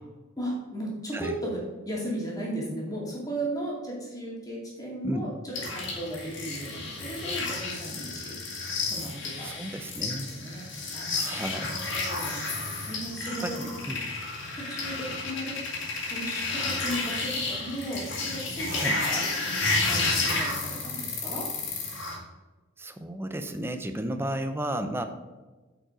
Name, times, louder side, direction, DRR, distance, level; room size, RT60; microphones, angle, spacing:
voice 1, 0.4-8.4 8.9-9.6 10.2-10.7 10.9-13.6 14.5-15.6 16.0-19.2 19.9-21.5, right 1 dB, 20° left, -4 dB, 2.4 m, -36 dB
sound 1, 5.5-22.2, left 3 dB, 70° left, 2.4 m, -31 dB
voice 2, 9.4-10.3 11.2-11.8 13.4-14.0 18.7-18.9 22.8-25.0, right 1 dB, 10° right, 8 dB, 0.6 m, -33 dB
8.7 x 5.3 x 5.0 m, 1.2 s
head